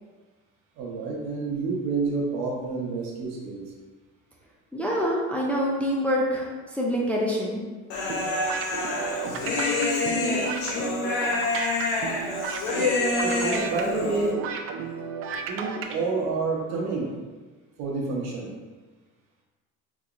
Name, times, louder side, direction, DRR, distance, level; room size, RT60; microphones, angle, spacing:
voice 1, 0.8-3.7 8.9-9.4 13.2-14.5 14.8-14.9 15.3-17.1 17.8-18.5, right 3 dB, 65° right, -2 dB, 1.0 m, -29 dB
voice 2, 4.7-6.5 6.7-7.6, equal, 5° left, -4 dB, 0.4 m, -25 dB
Human voice, 7.9-14.3, left 2 dB, 85° left, 0.9 m, -27 dB
sound 1, 8.1-15.9, right 6 dB, 50° right, 0.4 m, -34 dB
4.1 x 3.0 x 2.5 m, 1.3 s
cardioid pair, 120°, 29 cm